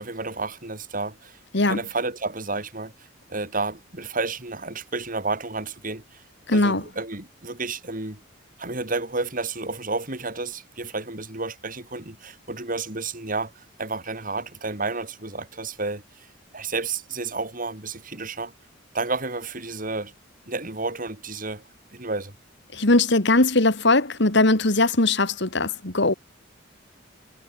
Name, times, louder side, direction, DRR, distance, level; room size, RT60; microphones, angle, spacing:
voice 1, 0.0-6.2 6.5-8.2 8.6-16.3 16.5-18.5 18.9-20.1 20.5-21.6 21.9-22.4, right 3 dB, 45° right, 4.4 m, -31 dB
voice 2, 6.5-6.8 22.7-26.1, left 2 dB, 60° left, 2.3 m, -20 dB
head